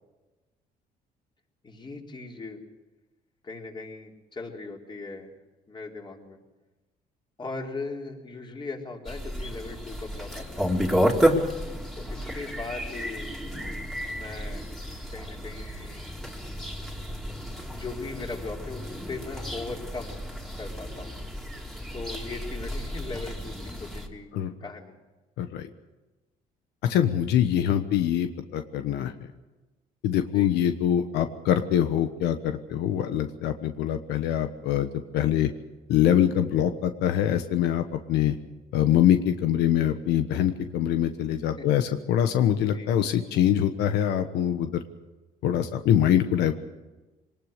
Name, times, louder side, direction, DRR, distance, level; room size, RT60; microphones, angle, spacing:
voice 1, 1.6-2.6 3.4-5.3 5.7-6.4 7.4-10.7 12.0-13.3 14.1-14.6 15.1-16.1 17.7-20.2 20.6-21.1 21.9-24.3 24.6-25.0 30.3-30.5 41.6-41.7 42.7-42.9, left 3 dB, 25° left, 1 dB, 4.0 m, -39 dB
sound 1, 9.1-24.1, equal, ahead, 3.0 m, -31 dB
voice 2, 25.4-25.7 26.8-29.1 30.0-35.5 35.9-38.4 38.7-44.8 45.4-46.5, left 10 dB, 85° left, 8 dB, 1.3 m, -24 dB
24.0 x 19.5 x 6.7 m, 1.2 s
cardioid pair, 110°, 17 cm